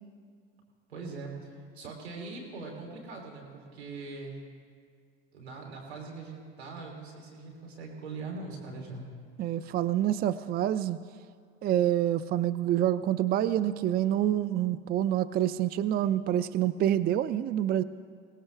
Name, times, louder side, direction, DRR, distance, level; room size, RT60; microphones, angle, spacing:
voice 1, 0.9-4.4 5.3-9.0, right 3 dB, 90° right, -1 dB, 3.5 m, -41 dB
voice 2, 9.4-11.0 11.6-17.8, right 11 dB, 30° right, 15 dB, 0.4 m, -27 dB
21.5 x 18.0 x 3.5 m, 2.1 s
hypercardioid pair, 80°, 31 cm